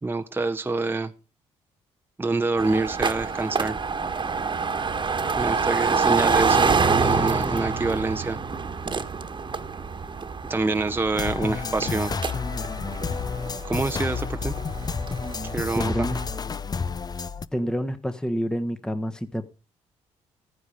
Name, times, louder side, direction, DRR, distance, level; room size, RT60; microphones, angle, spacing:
voice 1, 0.0-1.1 2.2-3.8 5.4-8.4 10.5-12.1 13.6-14.5 15.4-15.9, right 3 dB, 15° right, 0.8 m, -26 dB
sound 1, 2.6-16.4, right 5 dB, 35° right, 1.4 m, -27 dB
sound 2, 11.2-17.5, left 5 dB, 30° left, 0.6 m, -30 dB
voice 2, 15.7-16.2 17.5-19.5, equal, 5° left, 1.2 m, -28 dB
14.0 x 9.7 x 5.0 m
supercardioid pair, 65°, 13 cm